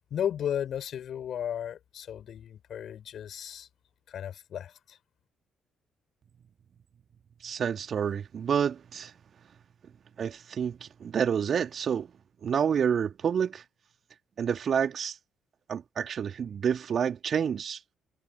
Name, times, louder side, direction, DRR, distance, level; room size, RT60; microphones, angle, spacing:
voice 1, 0.1-3.7 4.1-5.0, left 9 dB, 55° left, 3.8 m, -34 dB
voice 2, 7.4-9.1 10.2-12.1 12.4-13.6 14.4-15.2 15.7-17.8, right 7 dB, 50° right, 2.5 m, -28 dB
figure-of-eight pair, 45°, 0 cm